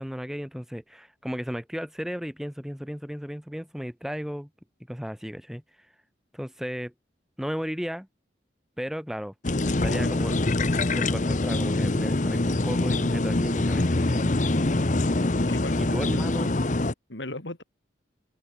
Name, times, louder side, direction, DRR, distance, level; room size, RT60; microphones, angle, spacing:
voice 1, 0.0-4.5 4.9-5.6 6.3-6.9 7.4-8.1 8.8-10.4 10.8-14.3 15.8-16.5, equal, ahead, 1.0 m, -34 dB
sound 1, 9.4-16.9, left 2 dB, 45° left, 1.0 m, -24 dB
voice 2, 15.3-16.2 17.1-17.6, left 1 dB, 85° left, 3.6 m, -37 dB
open air
head